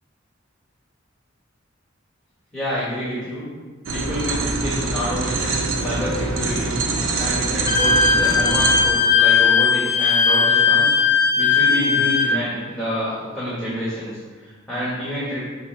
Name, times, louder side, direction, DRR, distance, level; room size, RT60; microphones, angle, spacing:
voice 1, 2.5-3.4 3.9-6.8 7.2-10.9 11.3-15.4, equal, 5° left, -9 dB, 1.6 m, -28 dB
sound 1, 3.9-8.9, right 3 dB, 85° right, 0.7 m, -24 dB
Wind instrument woodwind instrument, 7.7-12.3, left 5 dB, 45° left, 0.6 m, -17 dB
6.9 x 3.1 x 5.7 m, 1.4 s
head